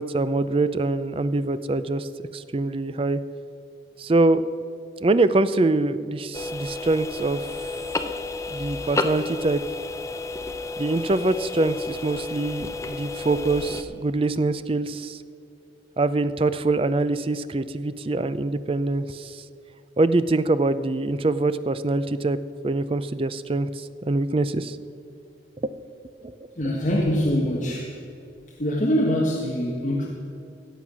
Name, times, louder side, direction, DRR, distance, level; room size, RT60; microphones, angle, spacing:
voice 1, 0.0-3.2 4.0-4.5 5.0-7.5 8.5-9.6 10.8-15.2 16.0-19.4 20.0-22.4 22.6-24.8 26.2-26.3, right 2 dB, 30° right, 13 dB, 0.4 m, -24 dB
sound 1, 6.3-13.8, left 3 dB, 15° left, 0.6 m, -31 dB
voice 2, 26.6-27.9 28.6-30.1, equal, 40° left, -3 dB, 1.4 m, -23 dB
17.0 x 7.3 x 6.2 m, 2.6 s
head